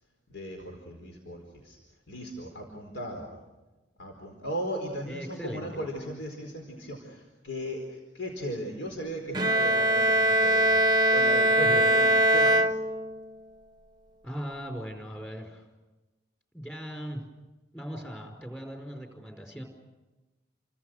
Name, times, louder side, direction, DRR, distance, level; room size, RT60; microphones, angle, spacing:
voice 1, 0.3-1.8 2.1-3.3 4.0-12.6, right 1 dB, 75° left, 2 dB, 4.6 m, -37 dB
voice 2, 5.1-5.8 11.6-11.9 14.2-15.6 16.5-17.2 17.7-19.6, equal, 10° left, 2 dB, 4.7 m, -38 dB
Bowed string instrument, 9.3-13.4, right 1 dB, 20° right, 0.9 m, -22 dB
29.5 x 24.5 x 6.5 m, 1.1 s
head